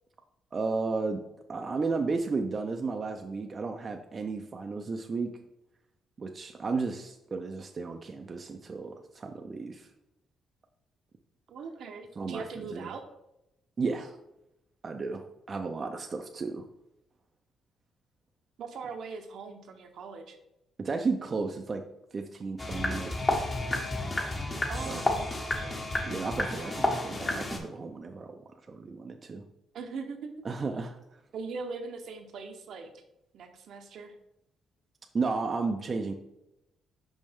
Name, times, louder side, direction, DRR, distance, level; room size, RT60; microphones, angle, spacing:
voice 1, 0.5-1.2 1.5-5.3 6.2-9.9 12.2-12.4 12.7-12.9 13.8-14.2 14.8-16.7 20.8-21.8 22.1-23.3 24.8-25.0 26.0-28.4 28.7-29.4 30.4-31.0 35.1-36.1, right 4 dB, 40° right, 4 dB, 0.5 m, -33 dB
voice 2, 11.5-13.0 18.6-20.4 24.7-25.8 26.5-26.9 29.7-30.5 31.3-32.9 33.3-34.1, right 4 dB, 70° right, 5 dB, 0.8 m, -41 dB
sound 1, 22.6-27.6, left 2 dB, 30° left, 1.1 m, -31 dB
5.3 x 5.2 x 3.6 m, 0.88 s
cardioid pair, 90°, 0 cm